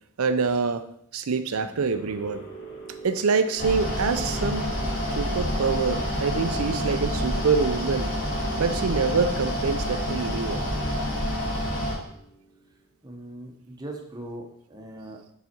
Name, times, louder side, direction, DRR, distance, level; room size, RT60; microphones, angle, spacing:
voice 1, 0.2-0.8 1.1-2.4 3.0-4.7 5.1-8.1 8.6-10.6, right 5 dB, 85° right, 11 dB, 0.6 m, -25 dB
sound 1, 1.9-12.8, right 3 dB, 90° left, 2.3 m, -45 dB
Mechanical fan, 3.6-12.0, equal, 65° left, 2.9 m, -28 dB
voice 2, 13.0-15.2, right 1 dB, 20° right, 1 dB, 0.9 m, -40 dB
7.0 x 4.1 x 4.5 m, 0.70 s
head